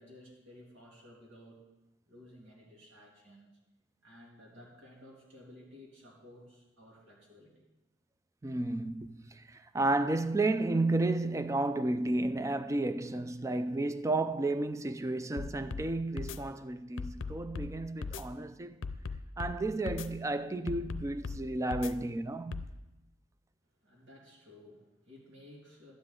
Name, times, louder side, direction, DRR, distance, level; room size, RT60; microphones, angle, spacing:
voice 1, 0.0-1.6 2.1-3.6 4.0-7.6 23.8-25.9, left 1 dB, 85° right, 2.8 m, -55 dB
voice 2, 8.4-18.8 19.4-22.7, right 2 dB, 15° right, 0.4 m, -32 dB
sound 1, 15.4-15.9 16.2-16.4 17.0-17.7 18.0-18.2 18.8-19.6 19.9-20.1 20.7-21.4 21.7-21.9 22.5-22.7, left 4 dB, 85° left, 0.6 m, -38 dB
12.5 x 9.8 x 3.8 m
head